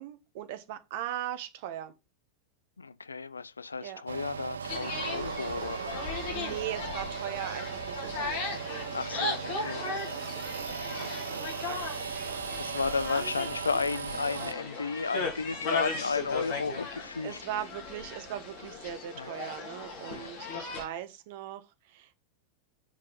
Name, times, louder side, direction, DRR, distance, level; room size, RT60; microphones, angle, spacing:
voice 1, 0.0-1.9 3.8-4.0 6.3-12.5 17.2-22.1, right 11 dB, 50° right, 1.1 m, -40 dB
voice 2, 2.8-6.3 8.9-9.9 10.9-11.2 12.6-17.6 19.2-19.3 20.1-20.3, left 4 dB, 75° left, 0.4 m, -34 dB
sound 1, 4.1-14.5, right 7 dB, 70° right, 0.3 m, -37 dB
sound 2, 4.6-20.8, left 4 dB, 50° left, 3.1 m, -37 dB
6.0 x 5.4 x 5.5 m
figure-of-eight pair, 90°, 0 cm